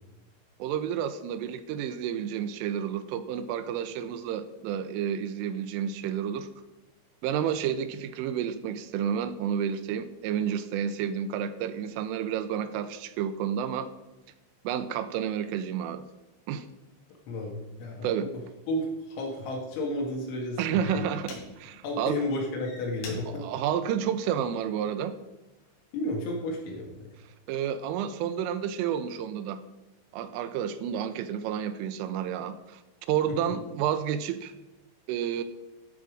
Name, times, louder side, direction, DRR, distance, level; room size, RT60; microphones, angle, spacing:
voice 1, 0.6-6.5 7.2-13.9 14.6-16.0 16.5-16.7 18.0-18.3 20.6-22.2 23.3-25.2 27.5-29.6 30.1-34.5 35.1-35.4, right 9 dB, 85° right, 10 dB, 3.1 m, -30 dB
voice 2, 17.3-18.3 18.7-21.1 21.8-23.4 25.9-27.1, left 1 dB, 75° left, -1 dB, 3.9 m, -32 dB
sound 1, 18.6-18.8 19.4-19.7 20.4-20.5 20.8-21.8 22.4-24.8 25.3-25.7, left 3 dB, 90° left, 4.9 m, -46 dB
13.0 x 7.0 x 4.9 m, 1.0 s
omnidirectional pair, 5.8 m